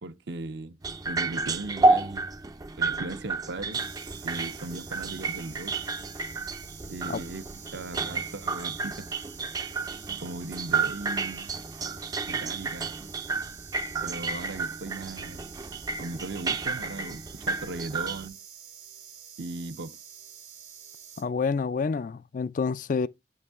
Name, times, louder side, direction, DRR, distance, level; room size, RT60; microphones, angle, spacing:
voice 1, 0.0-0.8 1.1-2.3 2.8-3.8 4.2-5.7 6.9-9.1 10.2-11.5 12.3-12.9 14.0-15.5 16.0-18.4 19.4-20.0, right 2 dB, 65° right, 0.6 m, -38 dB
sound 1, 0.8-18.3, right 3 dB, 20° right, 0.4 m, -31 dB
sound 2, 3.7-21.2, right 8 dB, 85° right, 2.5 m, -48 dB
voice 2, 21.2-23.1, left 5 dB, 45° left, 0.3 m, -28 dB
7.6 x 5.4 x 3.5 m
head